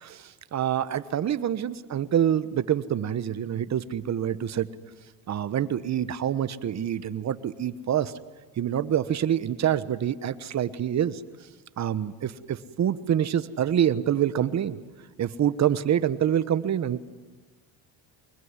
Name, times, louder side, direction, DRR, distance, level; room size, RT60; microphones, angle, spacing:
voice 1, 0.0-4.7 5.3-8.1 8.6-11.2 11.8-14.8 15.2-17.0, right 10 dB, 40° right, 14 dB, 1.2 m, -26 dB
24.0 x 21.5 x 9.8 m, 1.3 s
cardioid pair, 110°, 41 cm